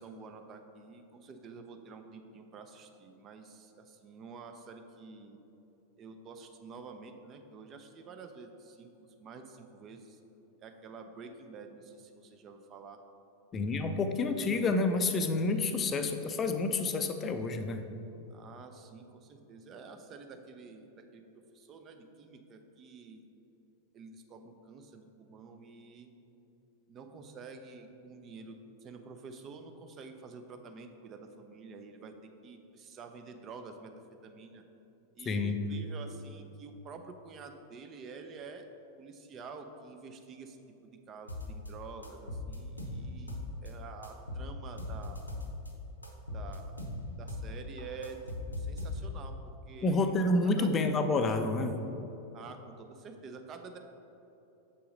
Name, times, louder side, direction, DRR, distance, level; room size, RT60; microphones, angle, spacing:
voice 1, 0.0-5.4 6.0-10.2 10.6-13.0 18.3-23.3 23.9-26.1 26.9-32.1 32.4-33.9 34.2-34.6 35.2-38.7 39.0-40.6 40.8-45.3 46.3-46.8 47.2-50.1 50.4-50.7 52.3-53.8, right 4 dB, 30° right, 6 dB, 0.6 m, -48 dB
voice 2, 13.5-17.8 35.3-35.6 49.8-51.8, left 3 dB, 25° left, 7 dB, 0.5 m, -29 dB
sound 1, 41.3-41.7 42.0-43.7 44.0-45.7 46.0-47.5 47.8-49.3, left 2 dB, 85° left, 0.8 m, -39 dB
7.2 x 5.6 x 3.8 m, 3.0 s
figure-of-eight pair, 90°, 0 cm